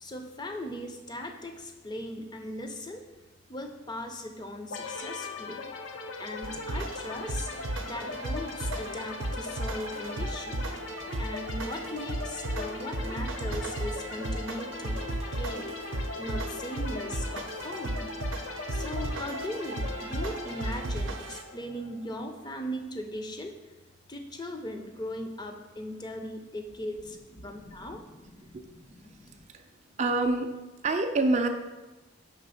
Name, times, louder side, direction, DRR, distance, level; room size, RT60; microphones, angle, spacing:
voice 1, 0.0-3.0 3.5-5.7 6.2-7.5 7.8-10.7 11.2-15.7 16.2-18.0 18.7-23.6 24.1-29.4, left 1 dB, 20° left, 4 dB, 0.5 m, -39 dB
sound 1, 4.7-22.3, left 4 dB, 75° left, 0.5 m, -40 dB
sound 2, 6.4-21.4, right 1 dB, 80° right, 0.6 m, -35 dB
voice 2, 30.0-30.5 30.8-31.5, right 2 dB, 35° right, 5 dB, 0.4 m, -26 dB
5.2 x 3.6 x 5.5 m, 1.1 s
head